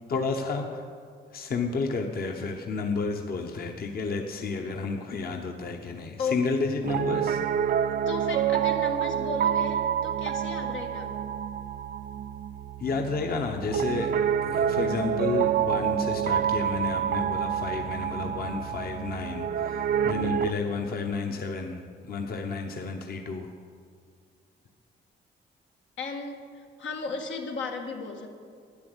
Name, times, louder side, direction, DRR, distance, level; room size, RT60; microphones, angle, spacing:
voice 1, 0.1-0.9 1.3-7.4 12.8-14.1 14.4-21.8 22.1-23.5, left 4 dB, 55° left, 3 dB, 1.0 m, -31 dB
Piano, 6.8-20.5, right 9 dB, 55° right, 0.4 m, -28 dB
voice 2, 8.1-11.1 26.0-28.3, left 4 dB, 85° left, 2 dB, 1.7 m, -35 dB
12.0 x 9.9 x 8.0 m, 2.1 s
cardioid pair, 130°, 19 cm